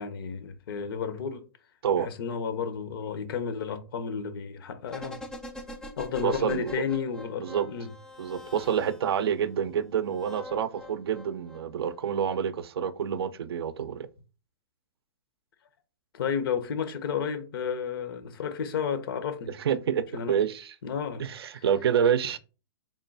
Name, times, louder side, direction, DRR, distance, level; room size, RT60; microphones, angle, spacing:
voice 1, 0.0-1.4 2.0-5.2 6.0-7.9 16.1-19.5 20.1-20.4 20.8-21.3 21.5-21.6, left 6 dB, 65° left, 0.7 m, -32 dB
sound 1, 4.9-9.3 10.1-11.9 12.2-12.3, left 1 dB, 5° left, 0.3 m, -44 dB
voice 2, 6.2-6.7 7.4-7.7 8.2-14.1 19.6-20.7 21.2-22.4, right 8 dB, 85° right, 0.4 m, -28 dB
3.6 x 2.2 x 3.9 m
hypercardioid pair, 145°, 13 cm